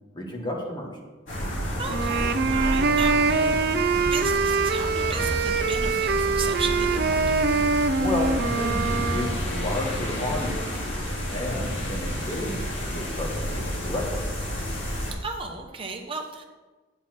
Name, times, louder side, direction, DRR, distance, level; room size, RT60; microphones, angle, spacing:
voice 1, 0.1-0.9 8.0-14.3, left 1 dB, 25° left, 0 dB, 1.4 m, -32 dB
sound 1, 1.3-15.1, equal, 85° left, 3.0 m, -30 dB
voice 2, 1.8-3.7 4.1-7.6 15.2-16.4, right 4 dB, 30° right, 2 dB, 1.1 m, -34 dB
sound 2, 1.9-9.4, right 4 dB, 55° right, 0.4 m, -24 dB
8.3 x 7.9 x 4.4 m, 1.3 s
head